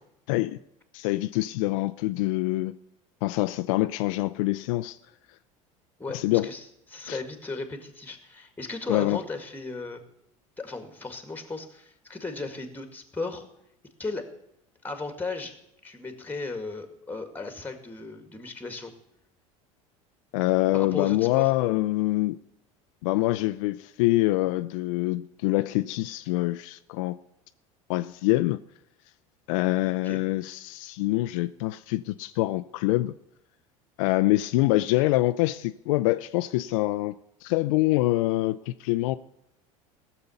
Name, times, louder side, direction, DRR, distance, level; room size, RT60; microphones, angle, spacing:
voice 1, 0.3-0.6 0.9-2.7 3.2-5.0 6.1-6.5 7.1-7.2 8.9-9.2 20.3-22.4 23.0-27.2 27.9-28.6 29.5-33.1 34.0-37.1 37.4-39.2, left 18 dB, 75° left, 0.5 m, -25 dB
voice 2, 6.0-6.6 6.9-10.0 10.6-13.4 14.0-14.3 14.8-15.5 15.8-18.9 20.7-21.5 30.0-30.2, left 3 dB, 10° left, 1.9 m, -36 dB
15.0 x 6.8 x 7.0 m
hypercardioid pair, 85°, 17 cm